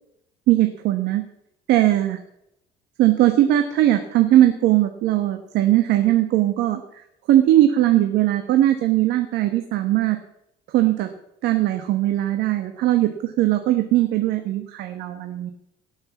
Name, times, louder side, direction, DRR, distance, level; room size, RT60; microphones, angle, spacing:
voice 1, 0.5-1.2 1.7-2.2 3.0-6.8 7.3-10.2 10.7-11.1 11.4-15.5, right 13 dB, 85° right, 7 dB, 1.3 m, -19 dB
18.0 x 6.4 x 7.2 m, 0.78 s
cardioid pair, 110°, 17 cm